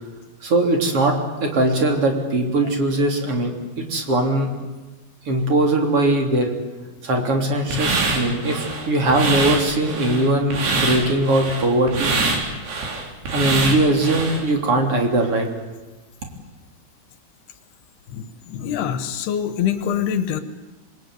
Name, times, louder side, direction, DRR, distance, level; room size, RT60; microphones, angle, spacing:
voice 1, 0.4-3.5 3.8-4.5 5.3-6.5 7.0-12.2 13.3-15.5, right 2 dB, 35° right, 3 dB, 4.2 m, -20 dB
sound 1, 7.7-14.4, right 3 dB, 90° right, 6.0 m, -24 dB
voice 2, 18.1-20.4, left 9 dB, 85° left, 11 dB, 3.5 m, -25 dB
27.0 x 21.5 x 9.5 m, 1.2 s
omnidirectional pair, 4.5 m